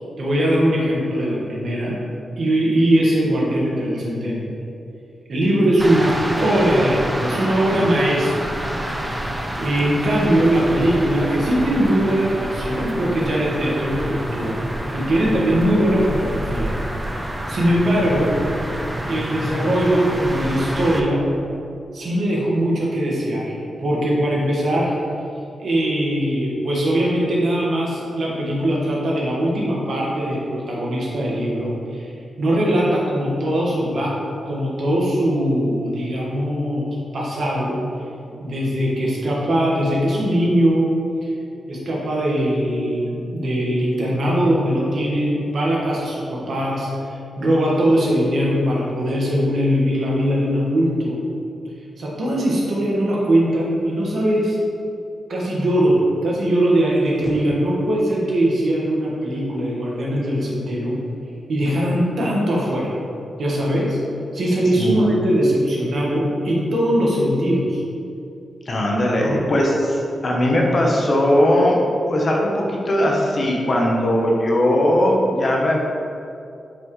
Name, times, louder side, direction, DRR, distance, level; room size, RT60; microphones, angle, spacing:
voice 1, 0.2-2.0 2.4-4.4 5.3-8.3 9.0-9.1 9.6-14.6 14.9-16.8 17.1-18.4 19.1-21.2 21.9-25.0 25.6-34.2 34.4-37.8 38.4-40.9 41.2-41.3 41.7-51.2 52.0-54.6 55.3-61.0 61.5-63.0 63.4-64.0 64.3-67.8 69.2-69.4, right 1 dB, 55° right, -4 dB, 1.6 m, -21 dB
sound 1, 5.8-21.0, right 1 dB, 10° right, 0.6 m, -28 dB
voice 2, 64.8-65.1 68.7-71.8 72.1-75.8, left 1 dB, 35° left, -2 dB, 1.0 m, -19 dB
7.7 x 5.9 x 3.2 m, 2.6 s
wide cardioid pair, 170°, 0 cm